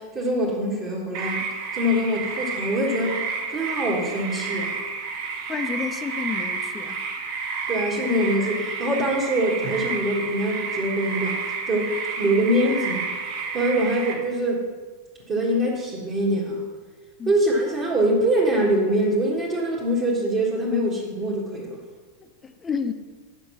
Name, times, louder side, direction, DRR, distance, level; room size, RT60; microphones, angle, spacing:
voice 1, 0.0-1.4 1.7-3.2 3.5-4.8 7.7-11.4 11.6-13.1 13.5-14.6 15.3-16.6 17.3-21.8, right 1 dB, 30° right, -4 dB, 1.5 m, -24 dB
sound 1, 1.1-14.1, right 5 dB, 50° right, 1.5 m, -30 dB
voice 2, 5.5-7.0 17.2-17.3 22.4-22.9, left 5 dB, 20° left, 9 dB, 0.6 m, -30 dB
7.9 x 5.3 x 7.2 m, 1.4 s
figure-of-eight pair, 90°, 0 cm